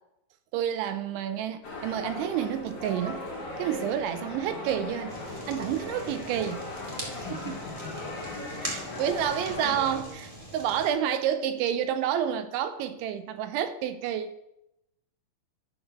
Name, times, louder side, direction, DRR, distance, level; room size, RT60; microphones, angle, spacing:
voice 1, 0.5-5.2 5.5-6.7 7.2-7.6 8.6-14.3, right 9 dB, 80° right, 3.0 m, -29 dB
sound 1, 1.6-10.0, left 2 dB, 60° left, 1.1 m, -38 dB
Fire, 5.1-10.9, equal, 60° right, 0.3 m, -41 dB
voice 2, 7.3-8.2 8.4-9.2 9.6-9.9, left 6 dB, 80° left, 1.8 m, -43 dB
13.0 x 4.8 x 6.5 m
omnidirectional pair, 5.5 m